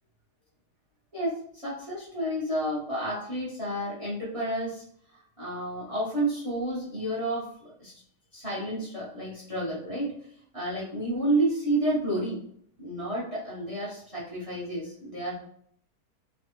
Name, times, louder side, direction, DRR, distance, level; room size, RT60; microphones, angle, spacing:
voice 1, 1.6-4.8 5.1-7.9 8.3-10.1 10.5-12.4 12.8-15.3, right 1 dB, 25° right, -6 dB, 0.8 m, -30 dB
3.2 x 2.4 x 2.9 m, 0.63 s
omnidirectional pair, 1.7 m